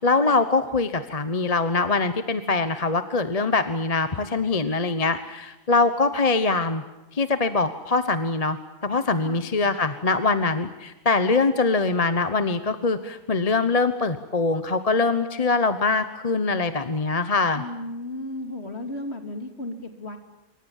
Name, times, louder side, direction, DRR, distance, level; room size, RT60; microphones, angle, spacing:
voice 1, 0.0-6.8 7.1-8.6 8.8-17.6, left 3 dB, 30° left, 10 dB, 1.1 m, -23 dB
voice 2, 17.5-20.2, left 1 dB, 45° left, 6 dB, 2.9 m, -34 dB
27.0 x 24.5 x 7.4 m, 1.0 s
omnidirectional pair, 1.5 m